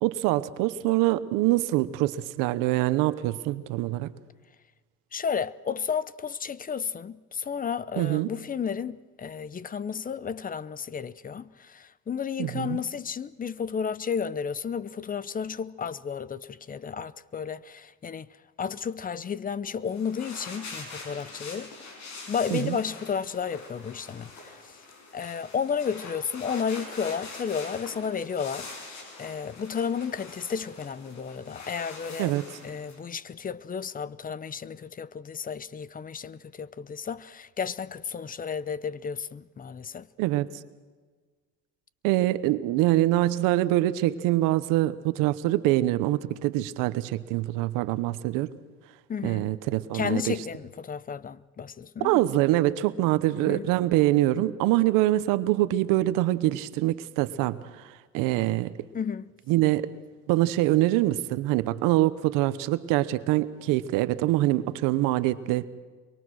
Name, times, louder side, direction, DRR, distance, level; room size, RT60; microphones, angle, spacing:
voice 1, 0.0-4.1 8.0-8.3 12.4-12.8 22.5-22.8 32.2-32.4 40.2-40.5 42.0-48.5 49.2-50.3 52.0-58.7 59.5-59.9 60.3-65.7, right 16 dB, 80° right, 1.0 m, -24 dB
voice 2, 5.1-18.3 18.6-21.7 22.3-24.8 25.1-32.3 32.6-40.1 49.1-49.5 49.9-52.2 53.4-53.7 58.9-59.3, left 6 dB, 25° left, 0.8 m, -32 dB
sound 1, 19.8-33.0, left 3 dB, 70° left, 7.0 m, -44 dB
24.0 x 23.0 x 6.4 m
cardioid pair, 105°, 32 cm